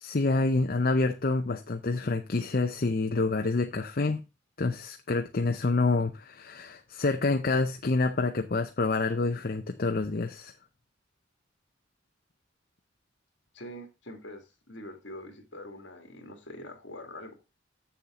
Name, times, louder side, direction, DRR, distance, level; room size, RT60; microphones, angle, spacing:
voice 1, 0.0-4.2 4.6-10.5, left 3 dB, 50° left, 0.7 m, -27 dB
voice 2, 13.5-17.3, left 1 dB, 65° left, 2.3 m, -44 dB
7.3 x 7.2 x 3.7 m
head